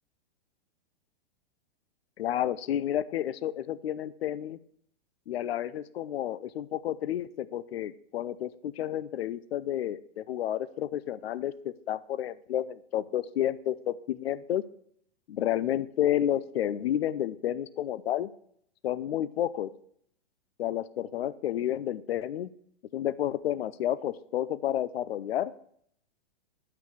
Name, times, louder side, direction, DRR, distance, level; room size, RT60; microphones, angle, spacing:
voice 1, 2.2-4.6 5.3-14.6 15.3-18.3 18.8-19.7 20.6-22.5 22.9-25.5, left 11 dB, 85° left, 16 dB, 0.5 m, -31 dB
9.5 x 5.9 x 4.7 m, 0.66 s
hypercardioid pair, 135°, 30 cm